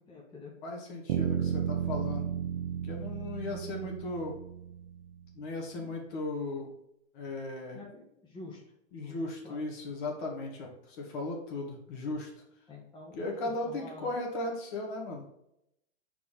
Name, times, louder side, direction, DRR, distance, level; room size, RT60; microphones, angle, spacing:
voice 1, 0.0-0.6 5.8-5.9 7.7-8.6 8.9-9.2 9.4-9.7 12.7-14.2, left 3 dB, 15° left, -4 dB, 1.3 m, -48 dB
voice 2, 0.6-2.3 2.8-4.3 5.4-6.7 7.1-7.8 8.9-12.3 13.1-15.3, left 2 dB, 45° left, 1 dB, 1.9 m, -36 dB
sound 1, 1.1-5.1, right 9 dB, 55° right, 1.0 m, -33 dB
5.6 x 4.7 x 4.2 m, 0.79 s
hypercardioid pair, 150°, 36 cm